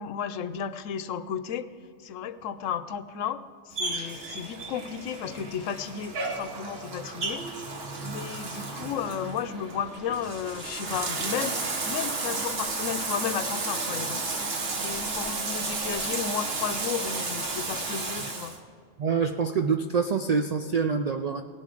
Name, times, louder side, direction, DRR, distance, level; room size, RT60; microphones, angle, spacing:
voice 1, 0.0-1.7 2.0-3.4 3.7-7.5 8.0-18.5, left 8 dB, 85° left, 13 dB, 1.0 m, -33 dB
Bathtub (filling or washing), 3.7-18.6, right 3 dB, 55° right, 1.4 m, -33 dB
voice 2, 19.0-21.4, right 5 dB, 70° right, 6 dB, 0.3 m, -26 dB
17.5 x 10.5 x 3.8 m, 2.2 s
omnidirectional pair, 1.3 m